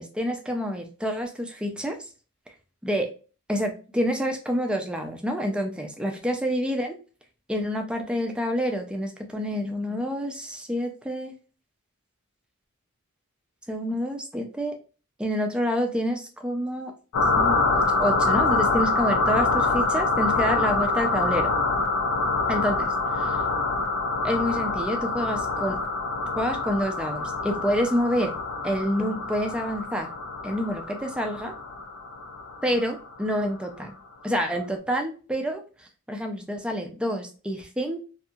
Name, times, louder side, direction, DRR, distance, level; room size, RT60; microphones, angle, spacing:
voice 1, 0.0-2.0 2.8-3.1 3.5-6.9 7.5-11.3 13.7-14.8 15.2-16.9 17.4-21.5 22.5-23.4 24.2-25.8 26.4-28.3 28.6-30.1 30.4-31.5 32.6-33.9 34.2-38.0, equal, 5° right, 4 dB, 0.3 m, -28 dB
sound 1, 17.1-33.4, left 3 dB, 85° left, 0.4 m, -25 dB
2.7 x 2.6 x 2.2 m, 0.36 s
head